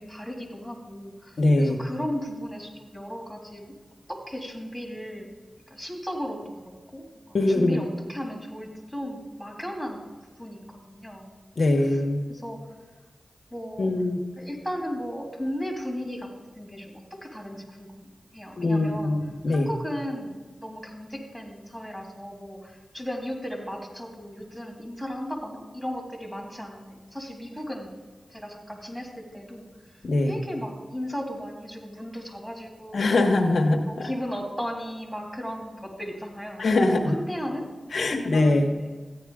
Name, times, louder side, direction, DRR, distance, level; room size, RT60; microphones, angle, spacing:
voice 1, 0.0-3.7 4.1-5.3 5.7-10.0 10.4-11.3 11.8-12.0 12.3-12.6 13.5-13.9 14.4-16.3 16.6-19.1 19.5-20.3 20.6-27.9 28.3-29.6 30.3-33.2 33.9-37.7 38.0-39.0, equal, 5° right, 0 dB, 3.2 m, -36 dB
voice 2, 1.4-1.8 7.3-7.8 11.6-12.2 13.8-14.2 18.6-19.7 30.0-30.4 32.9-34.1 36.6-37.2 37.9-38.7, left 2 dB, 75° left, 3 dB, 1.0 m, -22 dB
14.0 x 9.8 x 3.6 m, 1.4 s
cardioid pair, 50°, 0 cm